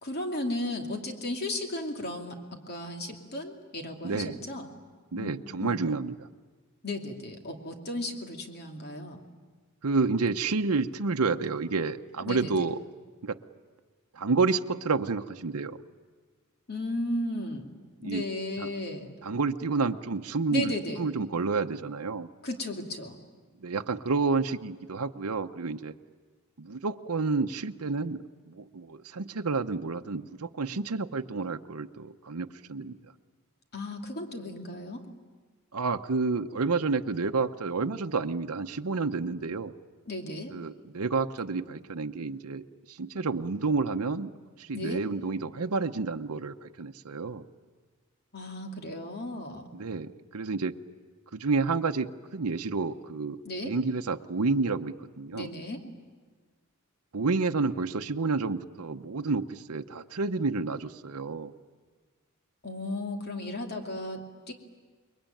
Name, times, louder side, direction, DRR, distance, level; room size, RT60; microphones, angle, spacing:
voice 1, 0.0-2.4 2.7-4.7 5.1-5.3 5.6-5.8 6.8-9.2 12.2-12.5 16.7-17.8 18.0-19.2 20.5-21.0 22.4-23.2 33.7-35.0 40.1-40.5 44.7-45.0 48.3-49.7 53.4-53.7 55.3-55.8 62.6-64.5, left 1 dB, 45° left, 3 dB, 2.7 m, -35 dB
voice 2, 4.0-4.4 5.1-6.3 9.8-12.8 13.2-13.4 14.1-15.8 18.0-18.2 18.6-18.7 19.2-22.3 23.6-25.9 26.6-33.0 35.7-39.7 40.5-44.3 44.6-47.5 49.7-50.7 51.3-55.5 57.1-61.5, right 4 dB, 75° right, 6 dB, 0.8 m, -30 dB
28.5 x 22.0 x 9.1 m, 1.4 s
head